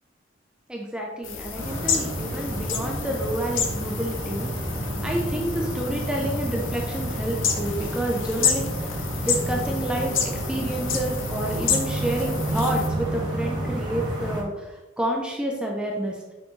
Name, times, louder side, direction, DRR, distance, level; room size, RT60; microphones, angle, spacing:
voice 1, 0.7-4.5 5.0-16.2, right 1 dB, 5° right, -1 dB, 0.7 m, -29 dB
sound 1, 1.2-12.9, left 7 dB, 80° left, 0.9 m, -30 dB
sound 2, 1.5-14.4, right 1 dB, 20° right, 1.6 m, -30 dB
6.2 x 5.8 x 3.3 m, 1.1 s
head